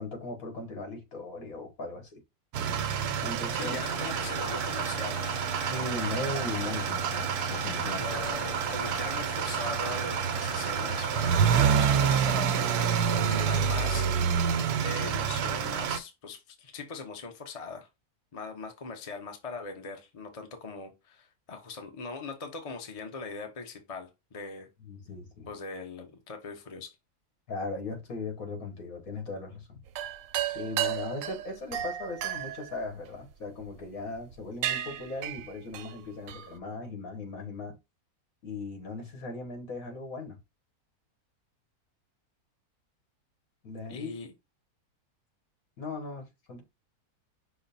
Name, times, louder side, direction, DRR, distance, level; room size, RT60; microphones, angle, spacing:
voice 1, 0.0-2.2 3.2-3.8 5.7-8.0 24.8-25.5 27.5-29.8 30.5-37.8 38.4-40.4 43.6-44.1 45.8-46.6, left 3 dB, 65° left, 1.7 m, -38 dB
sound 1, 2.5-16.0, right 7 dB, 90° right, 1.2 m, -28 dB
voice 2, 3.5-5.4 7.8-11.5 11.8-14.4 14.8-17.9 18.3-24.7 25.5-26.9 43.9-44.3, left 4 dB, 30° left, 0.7 m, -41 dB
sound 2, 3.8-11.4, left 8 dB, 85° left, 1.3 m, -43 dB
sound 3, 29.9-33.6 34.2-34.3 34.6-36.5, right 11 dB, 70° right, 0.9 m, -34 dB
5.9 x 2.1 x 4.1 m
omnidirectional pair, 1.6 m